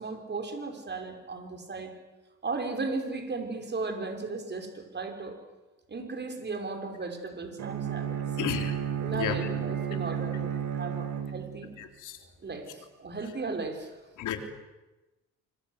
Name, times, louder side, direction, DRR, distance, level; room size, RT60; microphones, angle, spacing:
voice 1, 0.0-1.9 2.4-5.4 5.9-8.5 9.0-11.7 12.4-13.9, right 3 dB, 35° right, 5 dB, 5.8 m, -36 dB
Bowed string instrument, 7.6-11.8, right 9 dB, 75° right, 2.9 m, -32 dB
voice 2, 8.4-8.8 9.1-9.4 11.8-12.2 14.2-14.4, left 9 dB, 80° left, 5 dB, 3.8 m, -32 dB
26.0 x 24.0 x 8.3 m, 1.1 s
cardioid pair, 90°, 30 cm